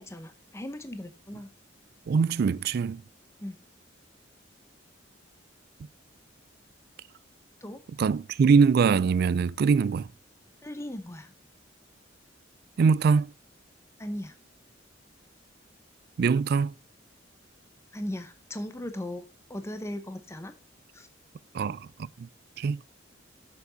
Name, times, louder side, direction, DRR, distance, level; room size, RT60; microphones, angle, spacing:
voice 1, 0.0-1.5 3.4-3.6 7.6-7.8 10.6-11.3 14.0-14.3 17.9-19.2 19.5-20.5 20.9-21.1, left 1 dB, 15° left, 0.8 m, -37 dB
voice 2, 2.1-3.0 8.0-10.1 12.8-13.3 16.2-16.7 21.5-22.3 22.6-22.8, right 5 dB, 55° right, 0.3 m, -23 dB
7.0 x 7.0 x 3.9 m
head